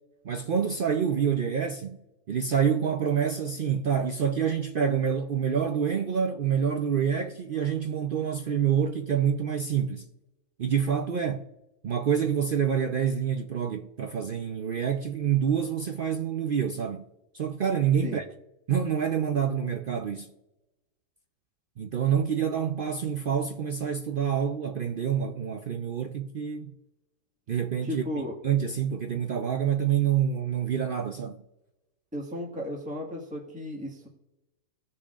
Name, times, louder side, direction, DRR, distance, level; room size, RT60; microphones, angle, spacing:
voice 1, 0.2-2.0 2.3-10.1 10.6-11.5 11.8-17.1 17.3-18.2 18.7-20.3 21.8-26.7 27.5-28.0 28.4-31.4, right 8 dB, 80° right, 0.4 m, -27 dB
voice 2, 27.8-28.3 32.1-34.1, left 1 dB, 5° right, 1.5 m, -35 dB
18.0 x 6.8 x 2.5 m
omnidirectional pair, 1.6 m